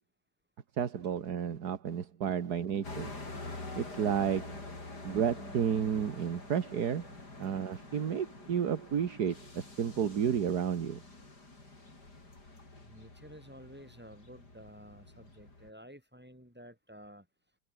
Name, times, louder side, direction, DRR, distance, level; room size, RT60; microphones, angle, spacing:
voice 1, 0.8-3.1 3.7-4.6 5.0-7.1 7.4-11.0, right 8 dB, 75° right, 2.0 m, -32 dB
sound 1, 2.8-15.7, left 2 dB, 85° left, 6.4 m, -47 dB
voice 2, 12.8-17.3, equal, 5° right, 7.8 m, -52 dB
omnidirectional pair, 1.7 m